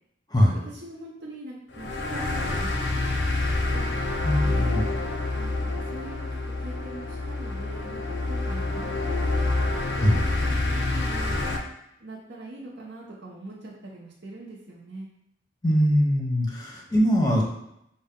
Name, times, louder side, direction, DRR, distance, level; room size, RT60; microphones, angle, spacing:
voice 1, 0.7-3.2 3.7-4.8 5.3-8.9 9.5-11.5 12.0-15.1, right 2 dB, 65° right, -5 dB, 0.8 m, -42 dB
sound 1, 1.7-11.6, left 2 dB, 65° left, 0.6 m, -27 dB
voice 2, 4.2-4.8 10.0-10.2 15.6-17.4, equal, 20° left, -1 dB, 0.7 m, -22 dB
5.5 x 2.2 x 3.6 m, 0.80 s
head